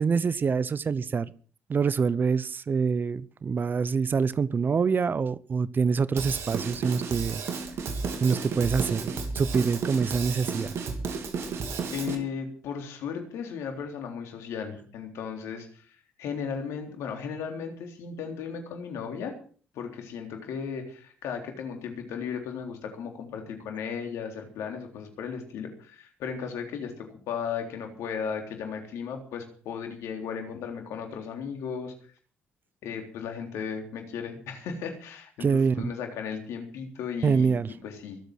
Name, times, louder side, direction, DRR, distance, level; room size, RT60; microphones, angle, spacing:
voice 1, 0.0-1.3 1.7-7.4 8.2-10.7 35.4-35.9 37.2-37.7, right 5 dB, 45° right, 20 dB, 0.8 m, -25 dB
Drum kit / Drum, 6.2-12.2, right 5 dB, 65° right, 3.1 m, -33 dB
voice 2, 11.9-19.3 19.7-31.9 32.8-37.5 37.8-38.2, left 6 dB, 75° left, 4 dB, 3.6 m, -35 dB
22.5 x 8.2 x 6.2 m, 0.43 s
supercardioid pair, 55°, 5 cm